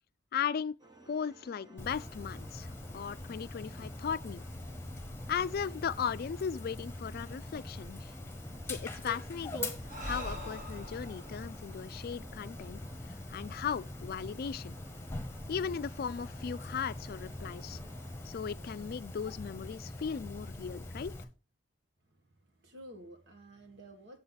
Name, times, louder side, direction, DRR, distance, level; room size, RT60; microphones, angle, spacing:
voice 1, 0.3-0.8 1.1-4.4 5.3-8.1 8.7-9.7 10.0-12.8 13.3-14.7 15.5-17.8 18.3-21.2, left 7 dB, 55° left, 0.4 m, -37 dB
sound 1, 0.8-18.3, right 1 dB, 20° right, 1.0 m, -57 dB
Dog, 1.8-21.2, left 2 dB, 15° left, 1.3 m, -43 dB
Breathing, 9.8-13.3, equal, 45° right, 2.7 m, -44 dB
voice 2, 22.0-24.2, right 1 dB, 65° right, 1.9 m, -52 dB
7.8 x 7.8 x 4.0 m
head